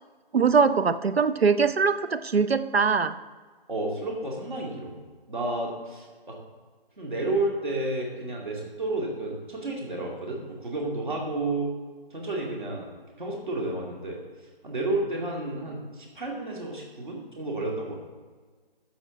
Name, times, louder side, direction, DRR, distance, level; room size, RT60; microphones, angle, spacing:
voice 1, 0.3-3.2, right 5 dB, 85° right, 12 dB, 0.7 m, -22 dB
voice 2, 3.7-4.9 5.3-6.4 7.0-11.7 12.1-12.9 13.2-14.2 14.6-18.0, right 2 dB, 55° right, -1 dB, 2.3 m, -31 dB
13.0 x 6.6 x 3.9 m, 1.4 s
figure-of-eight pair, 170°, 30 cm